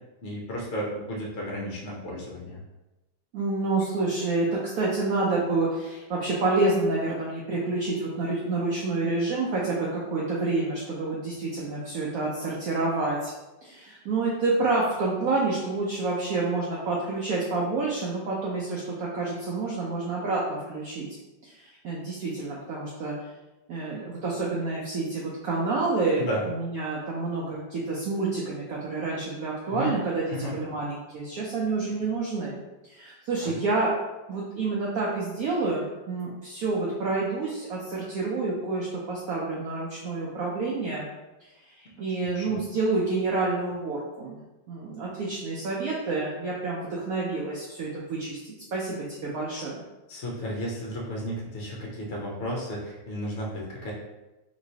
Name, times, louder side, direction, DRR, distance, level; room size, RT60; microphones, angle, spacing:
voice 1, 0.2-2.6 26.2-26.5 29.7-30.0 30.3-30.5 33.4-33.6 42.2-42.6 49.5-49.6 50.1-53.9, equal, 60° left, -4 dB, 0.7 m, -33 dB
voice 2, 3.3-13.3 13.6-21.1 21.4-23.2 23.7-33.9 34.3-41.1 41.4-44.4 44.7-49.7, right 3 dB, 70° right, -4 dB, 0.8 m, -28 dB
3.0 x 2.9 x 2.7 m, 1.0 s
omnidirectional pair, 2.0 m